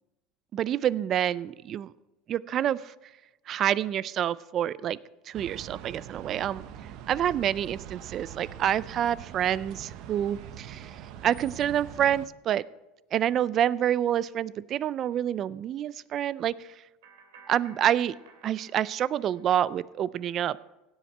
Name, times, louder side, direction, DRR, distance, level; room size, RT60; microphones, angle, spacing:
voice 1, 0.5-1.9 2.3-2.9 3.5-5.0 5.3-6.6 7.1-12.6 13.1-16.7 17.5-18.2 18.4-20.6, right 10 dB, 35° right, 20 dB, 0.3 m, -27 dB
sound 1, 5.3-12.3, right 10 dB, 55° right, 0.7 m, -43 dB
sound 2, 17.0-19.9, right 5 dB, 85° right, 2.8 m, -55 dB
16.5 x 7.8 x 4.4 m, 1.0 s
supercardioid pair, 145°, 0 cm